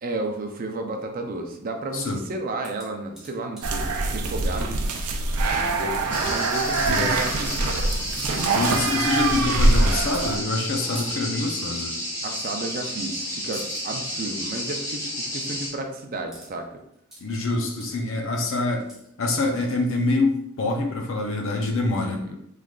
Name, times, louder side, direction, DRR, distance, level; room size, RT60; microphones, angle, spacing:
voice 1, 0.0-4.8 5.5-7.8 12.2-16.8 22.0-22.4, right 2 dB, 40° right, 4 dB, 0.4 m, -32 dB
sound 1, 2.6-4.1 5.9-6.2 6.8-8.6 8.9-9.5 10.1-10.3 10.9-11.1 12.4-12.6 12.9-13.1 13.5-13.8 16.3-16.5 16.8-17.2 17.8-17.9 18.3-20.8 21.5-21.6, equal, ahead, 0.8 m, -46 dB
sound 2, 3.6-10.4, right 2 dB, 90° right, 0.5 m, -24 dB
sound 3, 6.1-15.7, equal, 35° left, 1.3 m, -31 dB
voice 2, 8.5-12.0 17.2-18.9 19.2-22.2, left 2 dB, 60° left, 3 dB, 0.6 m, -25 dB
3.6 x 3.2 x 2.4 m, 0.76 s
head